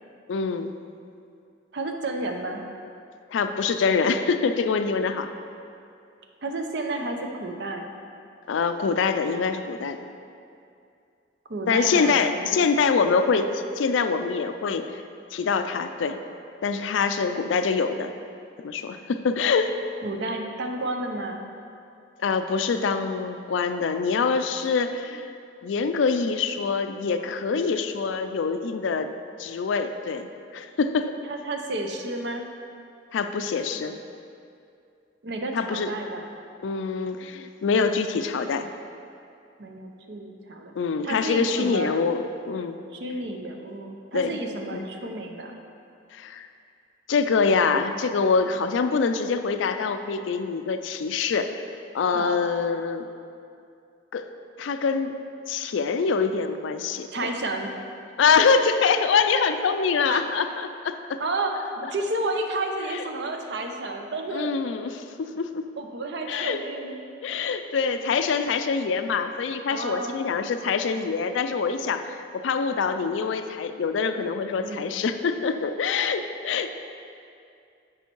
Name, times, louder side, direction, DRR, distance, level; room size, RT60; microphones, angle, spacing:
voice 1, 0.3-0.7 3.3-5.3 8.5-10.0 11.7-14.9 15.3-16.2 16.6-18.1 18.6-19.7 22.2-25.3 25.6-29.1 29.4-30.3 30.5-31.1 33.1-34.0 35.5-35.9 36.6-38.7 40.8-42.8 44.1-44.4 44.7-44.9 46.1-46.5 47.1-51.7 51.9-53.1 54.1-54.3 54.6-55.1 55.5-57.1 58.2-61.0 62.9-63.0 64.3-65.7 66.3-66.6 67.2-76.7, left 5 dB, 75° left, 8 dB, 0.4 m, -25 dB
voice 2, 1.7-2.6 6.4-7.9 11.5-12.6 20.0-21.5 31.3-32.4 35.2-36.3 39.6-40.7 41.0-41.9 42.9-45.5 52.1-52.4 57.1-57.7 60.0-60.2 61.2-64.5 65.8-67.0 69.7-70.2 74.6-74.9, right 2 dB, 60° right, 3 dB, 0.7 m, -31 dB
6.9 x 5.5 x 4.5 m, 2.5 s
head